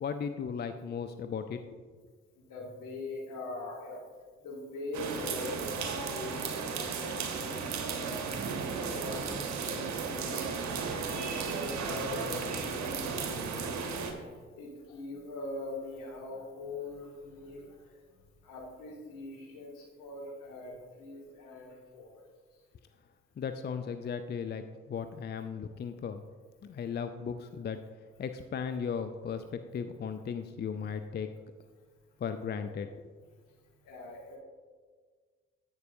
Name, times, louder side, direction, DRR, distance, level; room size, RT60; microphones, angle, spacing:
voice 1, 0.0-1.6 23.4-24.6 24.9-26.2 26.6-27.8 28.2-31.3 32.2-32.9, left 6 dB, 30° left, 9 dB, 0.5 m, -36 dB
voice 2, 2.3-4.0 4.4-8.6 8.9-9.2 9.6-22.3 33.8-34.4, left 2 dB, 65° left, -3 dB, 2.1 m, -42 dB
sound 1, 4.9-14.1, right 5 dB, 50° right, 1.1 m, -35 dB
11.0 x 8.0 x 2.7 m, 1.5 s
figure-of-eight pair, 40°, 35 cm